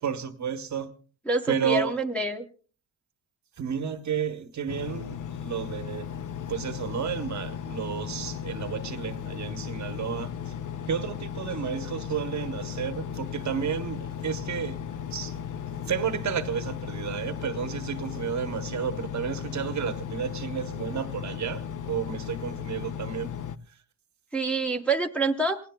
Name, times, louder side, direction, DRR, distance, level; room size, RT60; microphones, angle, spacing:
voice 1, 0.0-0.9 1.5-1.9 3.6-5.2 5.4-6.1 6.5-10.5 10.9-14.8 15.1-15.3 15.9-23.3 23.7-23.8, right 8 dB, 40° right, 1.0 m, -31 dB
voice 2, 1.3-2.4 11.7-12.1 24.3-25.6, right 2 dB, 5° left, 0.8 m, -27 dB
Engine, 4.7-23.6, left 8 dB, 45° left, 0.7 m, -36 dB
28.0 x 18.0 x 2.2 m
cardioid pair, 175°, 45 cm